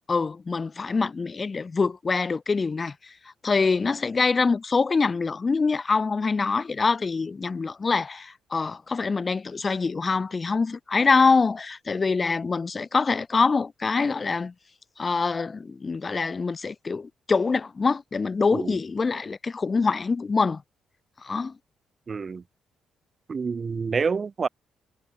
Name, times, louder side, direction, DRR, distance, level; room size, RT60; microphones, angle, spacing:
voice 1, 0.1-2.9 3.4-14.5 15.0-20.6 21.2-21.5, left 4 dB, 30° left, 1.7 m, -24 dB
voice 2, 22.1-22.4 23.3-24.5, right 5 dB, 35° right, 2.6 m, -27 dB
cardioid pair, 105°, 0 cm